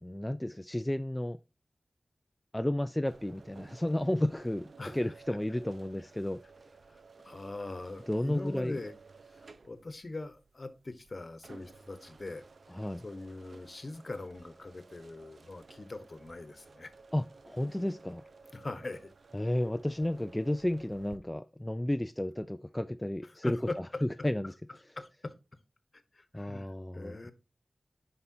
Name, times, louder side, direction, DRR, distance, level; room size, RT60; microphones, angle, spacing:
voice 1, 0.0-1.4 2.5-6.4 8.1-8.8 12.7-13.0 17.1-18.2 19.3-23.6 24.0-24.5 26.3-27.2, left 1 dB, 15° left, 0.4 m, -32 dB
sound 1, 3.1-21.2, right 4 dB, 70° right, 0.6 m, -55 dB
voice 2, 4.8-5.1 6.9-8.9 9.3-12.4 13.0-16.9 18.5-19.1 23.2-24.5 25.0-25.3 26.1-27.3, left 2 dB, 45° left, 1.1 m, -42 dB
9.6 x 5.6 x 2.8 m
wide cardioid pair, 60°, 0 cm